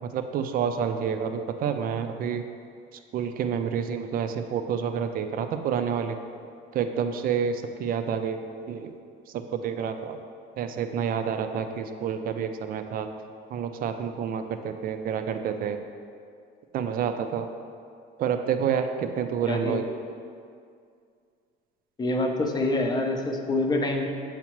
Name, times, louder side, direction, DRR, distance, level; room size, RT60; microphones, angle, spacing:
voice 1, 0.0-2.5 2.9-6.2 6.7-8.4 8.7-8.9 9.3-10.2 10.6-13.1 13.5-15.8 16.7-17.5 18.2-19.9, right 7 dB, 45° right, 8 dB, 0.4 m, -29 dB
voice 2, 19.5-19.8 22.0-24.1, left 2 dB, 20° left, 2 dB, 0.6 m, -26 dB
7.2 x 4.8 x 3.0 m, 2.3 s
cardioid pair, 120°, 21 cm